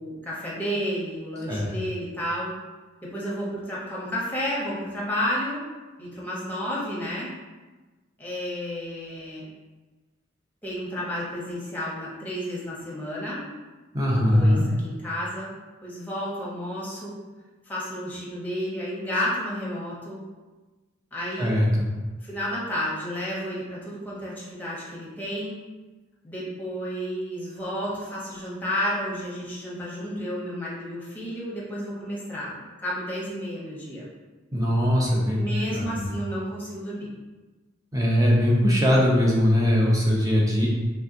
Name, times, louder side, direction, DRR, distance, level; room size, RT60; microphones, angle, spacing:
voice 1, 0.0-2.5 3.0-5.6 6.0-7.3 8.2-9.5 10.6-13.5 14.1-15.5 15.8-17.2 17.7-20.2 21.1-21.6 22.2-25.6 26.2-34.1 35.2-37.1, equal, 10° left, -6 dB, 1.1 m, -31 dB
voice 2, 13.9-14.6 21.4-21.9 34.5-35.4 35.7-36.1 37.9-40.7, equal, 20° right, -4 dB, 0.8 m, -21 dB
3.4 x 3.1 x 3.8 m, 1.2 s
head